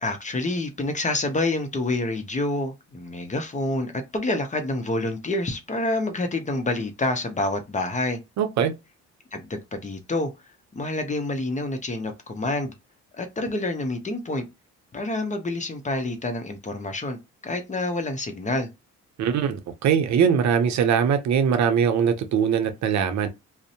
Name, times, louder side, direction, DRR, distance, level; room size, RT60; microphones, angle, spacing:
voice 1, 0.0-8.2 9.3-12.7 13.1-14.4 14.9-18.7, left 2 dB, 25° left, 0.6 m, -28 dB
voice 2, 8.4-8.8 19.2-23.3, right 7 dB, 65° right, 0.6 m, -21 dB
2.5 x 2.0 x 2.7 m
cardioid pair, 90°, 30 cm